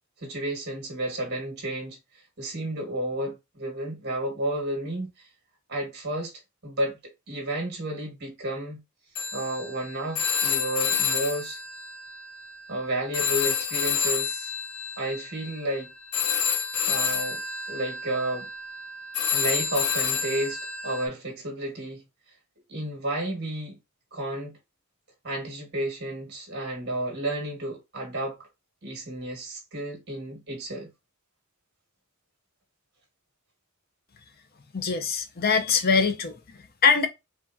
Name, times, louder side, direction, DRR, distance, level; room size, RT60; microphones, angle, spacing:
voice 1, 0.2-2.0 2.4-5.1 5.7-6.3 6.6-7.0 7.3-8.8 9.3-11.6 12.7-14.5 15.0-15.9 16.9-17.4 17.7-18.5 19.3-22.0 22.7-23.8 24.1-24.6 25.2-28.4 28.8-30.9, right 1 dB, 50° right, 1.9 m, -31 dB
Telephone, 9.1-12.8 13.1-21.1, left 7 dB, 80° left, 0.7 m, -29 dB
voice 2, 34.7-37.1, left 5 dB, 45° left, 0.7 m, -23 dB
4.8 x 2.4 x 2.7 m
head